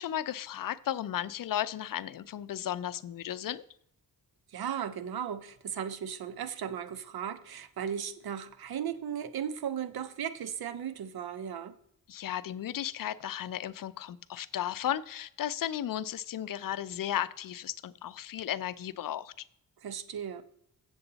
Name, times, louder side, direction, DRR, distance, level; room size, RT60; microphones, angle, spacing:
voice 1, 0.0-3.6 12.1-19.3, left 11 dB, 60° left, 0.5 m, -35 dB
voice 2, 4.5-11.7 19.8-20.4, right 8 dB, 75° right, 0.8 m, -36 dB
7.9 x 7.1 x 4.0 m
cardioid pair, 75°, 37 cm